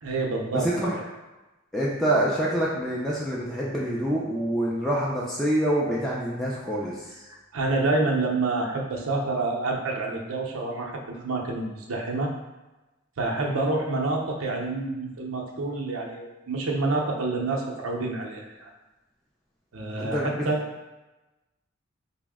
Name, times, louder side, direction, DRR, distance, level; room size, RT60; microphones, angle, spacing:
voice 1, 0.0-1.0 7.3-12.3 13.2-18.7 19.7-20.6, right 3 dB, 90° right, 1 dB, 0.6 m, -28 dB
voice 2, 0.5-1.0 1.7-7.0 13.4-13.6 20.0-20.4, right 1 dB, ahead, -6 dB, 0.4 m, -26 dB
4.0 x 2.0 x 3.5 m, 1.1 s
head